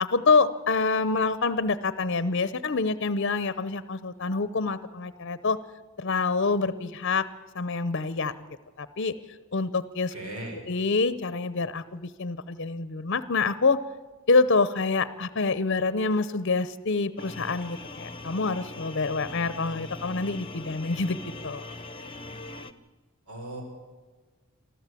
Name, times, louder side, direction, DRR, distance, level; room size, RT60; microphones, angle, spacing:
voice 1, 0.0-5.6 6.0-7.3 7.5-8.3 8.8-9.1 9.5-10.1 10.7-13.8 14.3-21.2 21.4-21.6, left 4 dB, 55° left, 15 dB, 0.7 m, -26 dB
voice 2, 10.1-10.6 23.3-23.6, right 1 dB, 80° right, 1 dB, 5.9 m, -37 dB
sound 1, 17.2-22.7, left 2 dB, 25° left, 0.9 m, -41 dB
24.0 x 14.0 x 8.4 m, 1.4 s
head